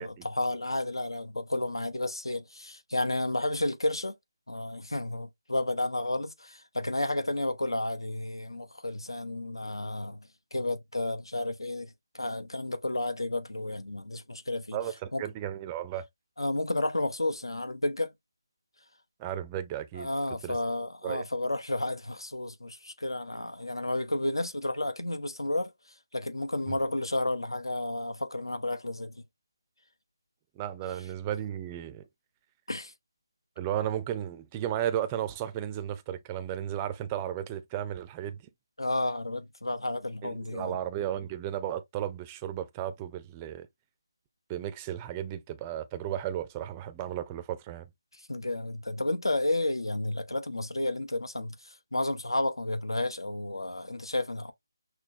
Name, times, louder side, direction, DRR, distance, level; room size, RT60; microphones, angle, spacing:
voice 1, 0.0-4.2 4.5-14.8 15.1-15.2 16.4-18.1 19.9-25.7 26.1-29.2 32.7-32.9 38.8-40.8 48.1-54.5, left 1 dB, 90° left, 0.8 m, -32 dB
voice 2, 14.7-16.1 19.2-20.1 20.4-20.6 21.0-21.2 26.7-26.8 30.6-32.0 33.6-38.4 40.2-43.7 44.5-47.9, right 11 dB, 15° right, 0.4 m, -34 dB
5.9 x 2.1 x 2.7 m
figure-of-eight pair, 160°, 2 cm